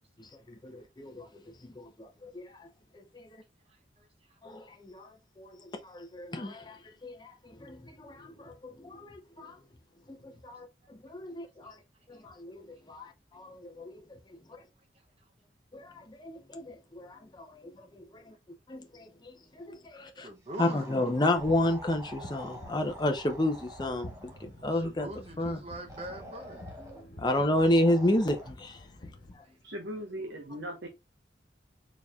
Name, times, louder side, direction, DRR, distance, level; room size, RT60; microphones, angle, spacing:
voice 1, 0.2-1.3 1.6-2.7 3.1-3.3 4.4-5.1 5.4-9.6 10.1-11.8 12.1-14.0 15.7-18.3 18.7-20.3 20.6-24.3 24.6-25.1 25.4-25.6 26.8-28.7 29.3-29.4, left 1 dB, 25° left, 0.7 m, -32 dB
voice 2, 3.7-4.4 11.6-11.7 12.1-12.2 20.2-21.0 24.6-26.7 29.4-29.5, right 1 dB, 35° right, 0.7 m, -44 dB
sound 1, 20.5-24.5 25.9-27.1 27.6-28.5, right 1 dB, 15° right, 1.1 m, -47 dB
sound 2, 21.3-29.4, left 1 dB, 65° left, 1.3 m, -49 dB
voice 3, 29.6-30.9, equal, 75° right, 1.0 m, -38 dB
4.5 x 4.1 x 2.3 m
head